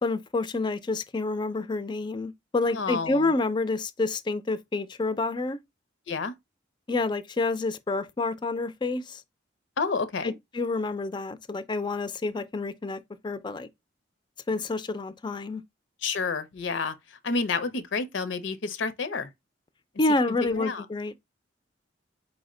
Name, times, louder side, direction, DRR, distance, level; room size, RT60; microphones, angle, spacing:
voice 1, 0.0-5.6 6.9-9.2 10.2-13.7 14.5-15.6 20.0-21.1, left 3 dB, 25° left, 0.3 m, -28 dB
voice 2, 2.7-3.3 6.1-6.3 9.8-10.3 16.0-19.3 20.4-20.8, left 4 dB, 80° left, 0.6 m, -30 dB
4.8 x 2.1 x 3.6 m
head